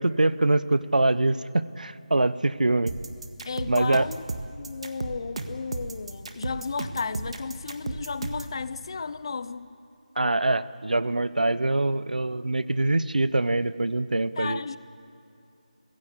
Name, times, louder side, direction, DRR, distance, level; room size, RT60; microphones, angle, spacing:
voice 1, 0.0-2.9 3.7-4.1 10.2-14.6, right 2 dB, 85° right, 16 dB, 0.9 m, -24 dB
sound 1, 2.9-8.5, right 3 dB, 50° right, 1.8 m, -34 dB
voice 2, 3.5-4.2 4.5-9.7 14.4-14.8, left 5 dB, 35° left, 15 dB, 0.7 m, -33 dB
30.0 x 16.5 x 8.4 m, 2.7 s
figure-of-eight pair, 165°, 4 cm